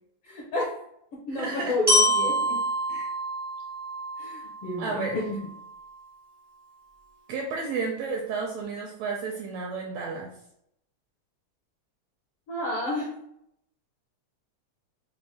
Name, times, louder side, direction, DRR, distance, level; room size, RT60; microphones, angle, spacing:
voice 1, 0.2-0.7 1.3-2.6 4.2-5.2 12.5-13.1, left 2 dB, 75° left, -4 dB, 1.3 m, -30 dB
voice 2, 1.3-1.8 2.9-3.1 4.8-5.2 7.3-10.3, right 4 dB, 80° right, 0 dB, 1.6 m, -32 dB
Glockenspiel, 1.9-5.8, equal, 30° right, 0.4 m, -27 dB
5.7 x 2.2 x 3.5 m, 0.75 s
omnidirectional pair, 3.8 m